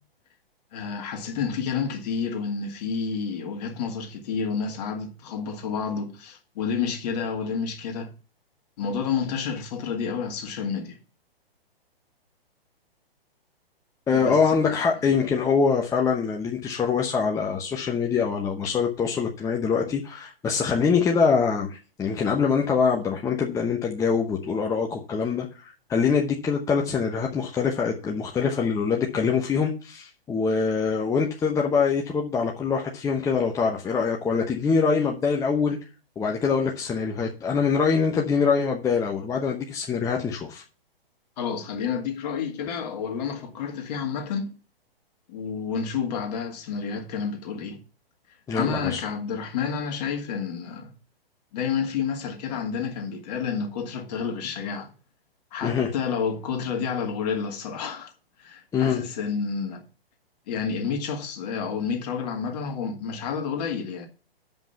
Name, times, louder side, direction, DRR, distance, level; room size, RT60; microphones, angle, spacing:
voice 1, 0.7-8.1 8.8-11.0 14.1-14.4 14.7-14.9 41.4-44.5 45.3-47.8 48.5-50.9 51.5-54.9 55.5-58.1 58.4-59.8 60.5-64.1, left 6 dB, 40° left, 1.9 m, -30 dB
voice 2, 14.1-35.8 36.2-40.6 48.5-49.0 55.6-55.9 58.7-59.0, left 5 dB, 10° left, 0.8 m, -24 dB
7.5 x 5.4 x 7.0 m
figure-of-eight pair, 120°, 30 cm